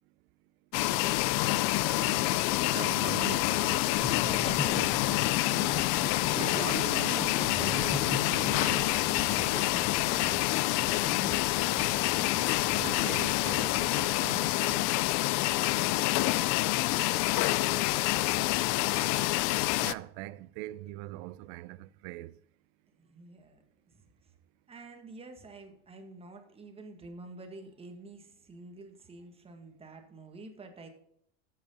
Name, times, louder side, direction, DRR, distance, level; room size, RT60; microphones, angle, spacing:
sound 1, 0.7-19.9, left 18 dB, 55° left, 0.4 m, -27 dB
voice 1, 0.8-2.8 4.1-5.5 6.3-6.5 9.1-11.9 15.3-19.2 23.0-24.3 24.7-30.9, right 3 dB, 15° right, 1.6 m, -50 dB
voice 2, 2.7-4.9 6.3-8.9 12.7-14.9 19.8-22.3, right 17 dB, 65° right, 0.6 m, -42 dB
Laughter, 3.9-9.6 10.1-10.4, left 3 dB, 20° left, 1.2 m, -37 dB
sound 2, 8.0-14.0, equal, ahead, 0.9 m, -47 dB
9.3 x 8.0 x 4.2 m
cardioid pair, 140°, 33 cm